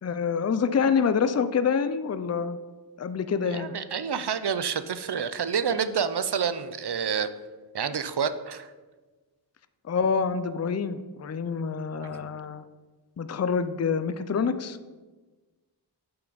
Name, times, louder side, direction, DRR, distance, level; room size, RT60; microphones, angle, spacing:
voice 1, 0.0-2.6 3.0-3.7 9.8-12.6 13.2-14.8, left 6 dB, 35° left, 11 dB, 0.4 m, -26 dB
voice 2, 3.4-7.3 7.7-8.7 11.9-12.3, right 7 dB, 65° right, 12 dB, 0.5 m, -29 dB
8.5 x 5.9 x 3.9 m, 1.3 s
wide cardioid pair, 50°, 44 cm